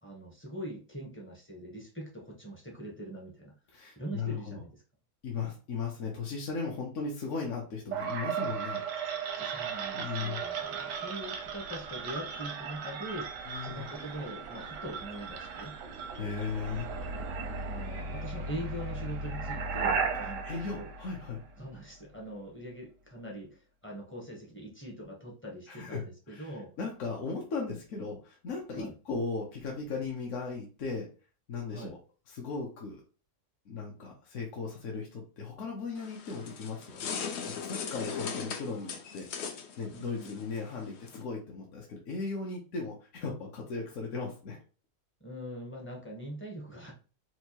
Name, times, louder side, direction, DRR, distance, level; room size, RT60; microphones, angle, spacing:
voice 1, 0.0-3.5 3.9-4.8 9.4-15.7 17.5-20.9 21.6-26.7 28.8-28.9 31.7-31.9 39.9-40.4 45.2-46.9, right 1 dB, 15° left, -2 dB, 0.5 m, -42 dB
voice 2, 3.7-4.6 5.2-8.8 9.9-10.4 13.5-13.9 16.1-16.9 20.4-21.4 25.7-31.1 31.5-32.0 32.3-33.0 33.7-44.6, left 4 dB, 60° left, -1 dB, 0.9 m, -37 dB
sound 1, 7.9-21.8, right 5 dB, 85° right, 1.2 m, -36 dB
sound 2, 36.0-41.2, left 6 dB, 80° left, 0.6 m, -39 dB
4.4 x 2.3 x 2.8 m, 0.35 s
omnidirectional pair, 1.8 m